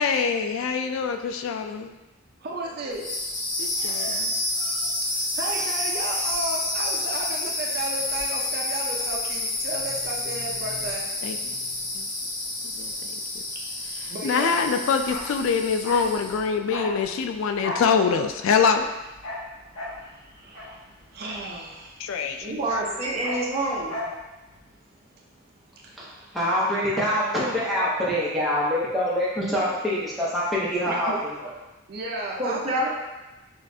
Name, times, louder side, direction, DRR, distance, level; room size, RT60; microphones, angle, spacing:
voice 1, 0.0-1.9 3.6-4.3 11.2-11.4 11.9-12.0 12.8-13.2 14.2-18.9 22.0-22.5, left 5 dB, 70° left, 7 dB, 0.3 m, -24 dB
voice 2, 2.4-3.1 5.1-11.1 14.1-14.6 19.7-20.8 21.1-22.0 25.2-25.3 25.7-26.2 30.9-31.2 31.9-32.9, right 2 dB, 45° right, -2 dB, 0.5 m, -34 dB
sound 1, 2.9-16.4, left 2 dB, 35° left, 0.8 m, -29 dB
Bark, 15.0-22.0 22.3-24.2 24.5-24.6, left 1 dB, 90° left, 0.8 m, -36 dB
voice 3, 22.4-24.0 32.4-32.9, right 1 dB, 30° right, -6 dB, 0.9 m, -27 dB
voice 4, 26.3-31.5, equal, ahead, -8 dB, 0.9 m, -25 dB
6.2 x 2.4 x 2.7 m, 1.1 s
head